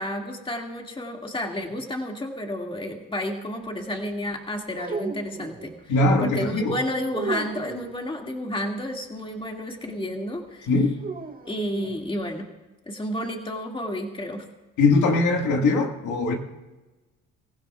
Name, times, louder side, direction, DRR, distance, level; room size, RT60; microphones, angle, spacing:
voice 1, 0.0-5.7 6.2-10.7 11.5-12.5 12.9-14.5, left 1 dB, 15° left, 1 dB, 2.1 m, -31 dB
sound 1, 4.7-5.8 7.1-8.0 11.0-12.0, right 4 dB, 30° right, 1.5 m, -34 dB
voice 2, 5.9-6.8 10.7-11.0 14.8-16.3, left 3 dB, 75° left, 2 dB, 1.9 m, -21 dB
25.0 x 15.5 x 2.4 m, 1.1 s
cardioid pair, 100°, 30 cm